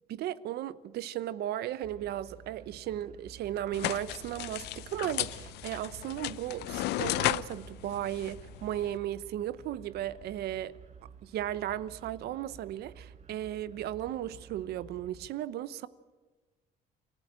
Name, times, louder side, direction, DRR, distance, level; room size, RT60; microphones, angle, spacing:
voice 1, 0.1-10.7 11.2-15.9, right 12 dB, 70° right, 0.9 m, -36 dB
sound 1, 1.8-15.3, right 6 dB, 45° right, 1.4 m, -52 dB
sound 2, 3.7-9.0, left 16 dB, 80° left, 0.6 m, -35 dB
28.5 x 13.5 x 8.8 m
cardioid pair, 110°, 17 cm